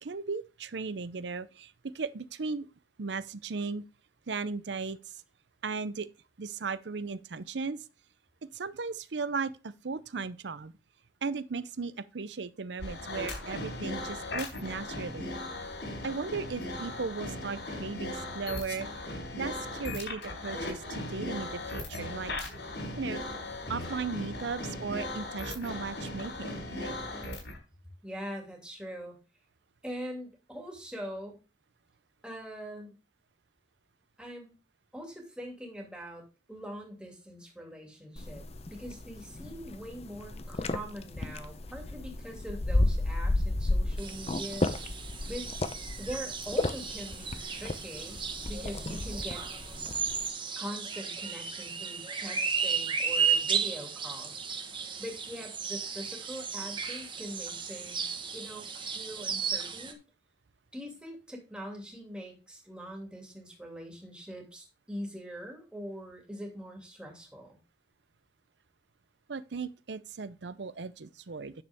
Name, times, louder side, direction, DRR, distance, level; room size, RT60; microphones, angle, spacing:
voice 1, 0.0-2.7 3.0-3.8 4.3-5.1 5.6-6.1 6.4-7.8 8.4-10.7 11.2-15.3 16.0-18.9 19.4-22.3 23.0-23.2 23.7-27.0 69.3-71.5, right 4 dB, 80° right, 0.6 m, -36 dB
sound 1, 12.8-27.6, left 2 dB, 90° left, 4.4 m, -38 dB
voice 2, 28.0-29.2 29.8-31.4 32.2-32.9 34.2-34.5 34.9-44.8 45.3-45.5 46.0-49.4 50.6-54.4 55.0-60.0 60.7-67.6, equal, 5° right, 2.5 m, -42 dB
sound 2, 38.2-50.3, left 2 dB, 35° left, 0.6 m, -33 dB
sound 3, 44.0-59.9, right 6 dB, 30° right, 1.3 m, -34 dB
9.8 x 6.8 x 3.6 m
head